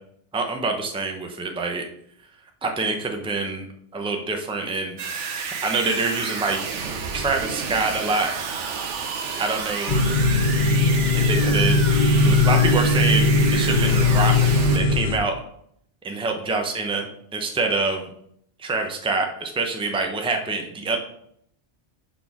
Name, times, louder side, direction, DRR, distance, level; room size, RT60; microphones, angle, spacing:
voice 1, 0.3-1.8 2.6-3.6 3.9-5.0 5.4-6.7 7.1-8.3 9.4-10.0 11.1-11.8 12.2-15.3 16.0-17.0 17.3-18.1 18.6-21.0, right 3 dB, 5° right, 3 dB, 0.7 m, -26 dB
sound 1, 5.0-14.8, right 5 dB, 80° right, 1.1 m, -30 dB
sound 2, 9.9-15.2, left 2 dB, 40° left, 0.7 m, -19 dB
5.5 x 4.2 x 6.0 m, 0.69 s
omnidirectional pair, 1.2 m